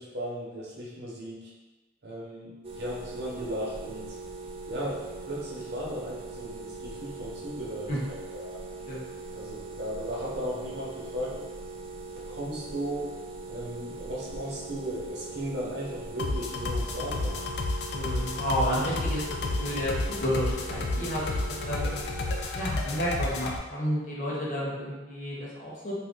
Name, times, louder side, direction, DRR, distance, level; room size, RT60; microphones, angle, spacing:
voice 1, 0.0-1.5 2.0-4.1 4.7-5.0 5.3-8.6 9.3-11.4 12.3-13.1 13.5-17.5, equal, 70° right, -5 dB, 0.9 m, -36 dB
sound 1, 2.6-22.5, right 3 dB, 35° right, 0.3 m, -41 dB
sound 2, 16.2-23.6, left 3 dB, 65° left, 0.3 m, -31 dB
voice 2, 17.9-19.3 19.6-21.9 22.6-25.9, equal, 45° left, -6 dB, 0.9 m, -31 dB
2.7 x 2.4 x 3.5 m, 1.2 s
head